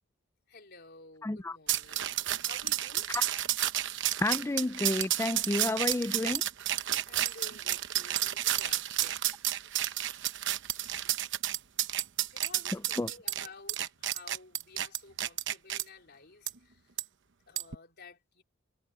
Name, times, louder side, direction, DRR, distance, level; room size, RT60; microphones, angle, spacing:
voice 1, 0.5-3.1 7.1-9.2 12.3-16.9 17.5-18.4, left 3 dB, 50° left, 4.1 m, -53 dB
voice 2, 1.2-1.6 4.2-6.4 12.7-13.1, left 2 dB, 10° left, 0.4 m, -31 dB
sound 1, 1.7-15.8 16.5-16.6 17.0-17.1 17.6-17.7, right 12 dB, 60° right, 0.9 m, -31 dB
head